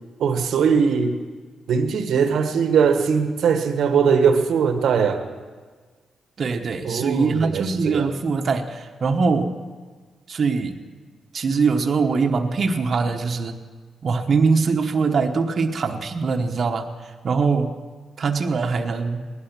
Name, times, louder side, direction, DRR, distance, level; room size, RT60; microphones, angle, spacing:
voice 1, 0.2-1.2 1.7-5.2 6.8-8.1, right 6 dB, 75° right, 7 dB, 1.3 m, -20 dB
voice 2, 6.4-9.6 10.3-10.8 11.3-13.6 14.0-17.8 18.2-19.3, right 4 dB, 50° right, 4 dB, 1.1 m, -22 dB
19.0 x 12.0 x 6.1 m, 1.5 s
cardioid pair, 90°, 0 cm